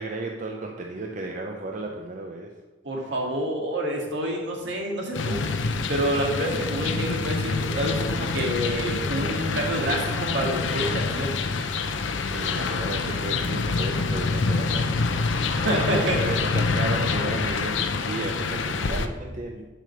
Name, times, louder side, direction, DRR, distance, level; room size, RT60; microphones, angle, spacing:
voice 1, 0.0-2.5 3.0-3.1 12.2-15.0 15.5-19.7, right 2 dB, 45° right, 2 dB, 0.6 m, -34 dB
voice 2, 2.8-5.5 5.9-11.3 15.5-16.2, right 1 dB, 70° right, 0 dB, 1.9 m, -28 dB
sound 1, 5.1-19.1, left 4 dB, 80° left, 0.6 m, -26 dB
7.6 x 5.1 x 6.6 m, 1.2 s
head